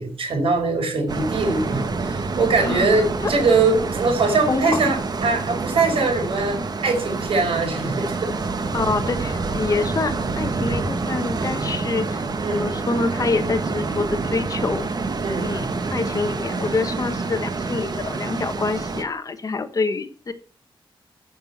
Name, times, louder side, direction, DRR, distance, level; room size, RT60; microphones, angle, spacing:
voice 1, 0.0-8.3 12.4-12.7 15.2-15.5, right 3 dB, 85° right, 3 dB, 5.3 m, -22 dB
sound 1, 1.1-19.0, right 3 dB, 45° right, 1.5 m, -27 dB
voice 2, 2.6-3.3 4.3-4.9 8.7-14.9 15.4-20.3, left 4 dB, 40° left, 9 dB, 1.4 m, -26 dB
14.0 x 6.7 x 5.8 m, 0.37 s
wide cardioid pair, 125°, 9 cm